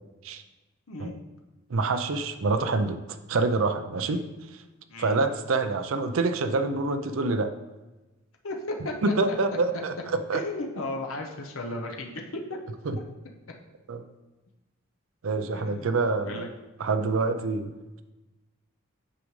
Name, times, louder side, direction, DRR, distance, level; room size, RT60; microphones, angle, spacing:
voice 1, 1.7-4.2 5.0-7.5 9.0-9.9 10.3-10.4 12.9-13.0 13.9-14.0 15.2-16.5 16.8-17.7, right 3 dB, 75° right, 8 dB, 0.5 m, -26 dB
voice 2, 8.4-9.3 10.3-12.6 13.0-13.1 15.5-15.9 16.2-16.5, left 2 dB, 80° left, 1 dB, 0.8 m, -35 dB
8.4 x 5.1 x 3.2 m, 1.1 s
head